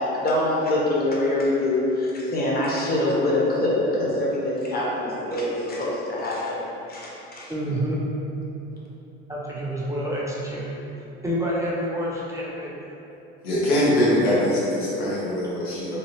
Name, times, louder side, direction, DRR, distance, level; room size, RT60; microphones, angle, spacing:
voice 1, 0.0-7.5, left 1 dB, 30° left, -5 dB, 0.9 m, -24 dB
voice 2, 7.5-8.0 9.3-10.7 11.2-12.8, equal, 10° right, -6 dB, 0.5 m, -28 dB
voice 3, 13.4-16.0, left 1 dB, 85° left, -6 dB, 0.9 m, -22 dB
3.2 x 2.3 x 3.0 m, 3.0 s
hypercardioid pair, 75°, 31 cm